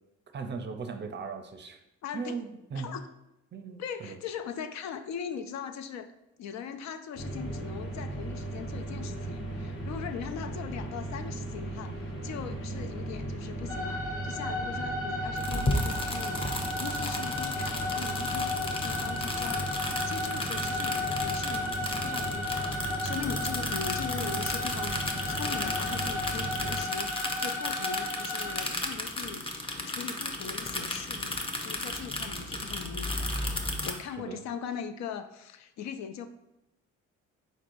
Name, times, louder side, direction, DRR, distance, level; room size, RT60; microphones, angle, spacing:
voice 1, 0.3-1.8 2.1-3.0 3.5-4.2 34.2-34.4, right 5 dB, 35° right, 6 dB, 0.5 m, -38 dB
voice 2, 2.0-2.4 2.7-3.0 3.8-6.1 6.4-29.5 29.9-33.3 33.8-36.3, left 7 dB, 65° left, 9 dB, 0.4 m, -40 dB
sound 1, 7.2-26.8, right 2 dB, 40° left, 1.0 m, -37 dB
sound 2, 13.7-28.6, left 2 dB, 85° left, 1.2 m, -34 dB
sound 3, 15.4-33.9, left 1 dB, 20° left, 0.6 m, -34 dB
4.5 x 4.1 x 2.5 m, 0.89 s
cardioid pair, 90°, 30 cm